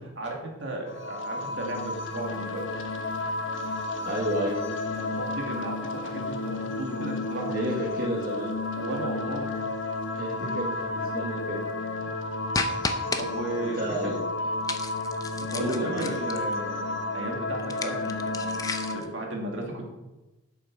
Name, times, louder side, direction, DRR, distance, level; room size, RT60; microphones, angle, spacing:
voice 1, 0.2-2.7 4.9-7.6 8.8-9.5 13.2-13.8 15.5-19.9, right 2 dB, 70° right, 0 dB, 2.5 m, -35 dB
sound 1, 0.9-19.0, left 2 dB, 75° left, 1.1 m, -32 dB
voice 2, 4.0-4.6 7.5-8.5 10.1-11.6 12.0-12.1 13.6-14.2 15.6-16.1, right 1 dB, 50° right, -3 dB, 1.8 m, -31 dB
sound 2, 12.5-13.2 14.6-16.5 17.6-19.1, left 3 dB, 20° left, 0.6 m, -32 dB
8.3 x 8.2 x 6.3 m, 1.0 s
head